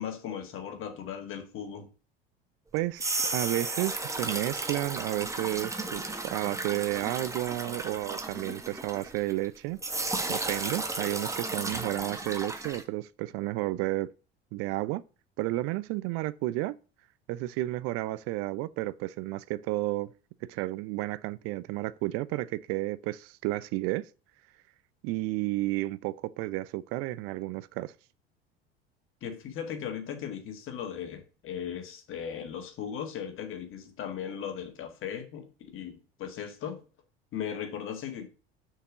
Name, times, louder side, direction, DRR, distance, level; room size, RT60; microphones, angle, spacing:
voice 1, 0.0-1.9 29.2-36.8 37.3-38.3, left 8 dB, 45° left, 2.0 m, -37 dB
voice 2, 2.7-9.8 10.3-14.1 14.5-15.0 15.4-16.7 17.3-20.1 20.4-24.1 25.0-27.9, right 18 dB, 50° right, 0.5 m, -32 dB
sound 1, 2.8-9.5 9.8-12.8, right 2 dB, 10° right, 1.3 m, -34 dB
6.6 x 4.7 x 6.2 m
figure-of-eight pair, 70°, 30 cm